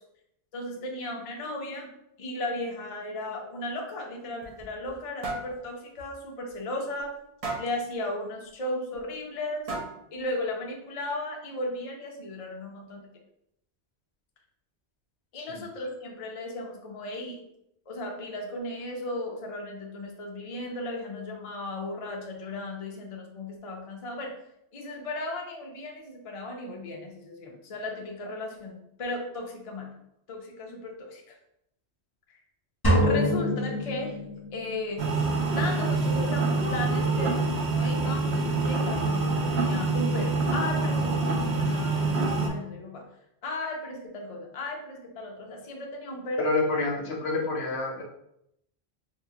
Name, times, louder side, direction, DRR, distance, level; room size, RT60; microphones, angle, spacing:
voice 1, 0.5-1.9 2.2-7.1 7.6-9.6 10.1-13.1 15.3-17.4 17.9-24.3 24.7-29.9 30.3-31.3 32.3-32.4 33.0-34.2 34.5-43.0 43.4-46.5, left 2 dB, 45° left, 1 dB, 0.5 m, -35 dB
sound 1, 4.2-5.0 5.2-5.5 6.0-6.1 6.5-6.6 7.4-7.8 8.9-9.0 9.7-10.1, right 2 dB, 40° right, 0.7 m, -34 dB
sound 2, 32.8-34.9, equal, 20° left, 0.9 m, -25 dB
sound 3, 35.0-42.5, right 3 dB, 75° right, 0.9 m, -26 dB
voice 2, 46.4-48.0, left 3 dB, 70° left, 0 dB, 1.0 m, -28 dB
3.6 x 2.4 x 2.8 m, 0.78 s
omnidirectional pair, 1.1 m